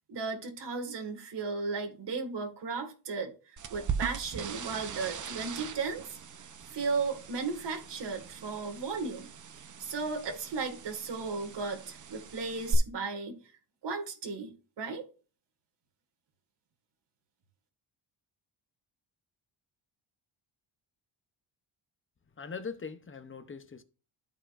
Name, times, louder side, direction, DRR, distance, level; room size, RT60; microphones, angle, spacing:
voice 1, 0.1-6.2 6.7-9.3 9.6-13.4 13.8-14.5 14.8-15.0, right 4 dB, 60° right, 2.0 m, -35 dB
sound 1, 3.6-12.7, right 7 dB, 40° right, 0.8 m, -40 dB
voice 2, 22.4-23.8, left 5 dB, 25° left, 0.7 m, -41 dB
13.5 x 5.0 x 2.5 m
wide cardioid pair, 140°, 47 cm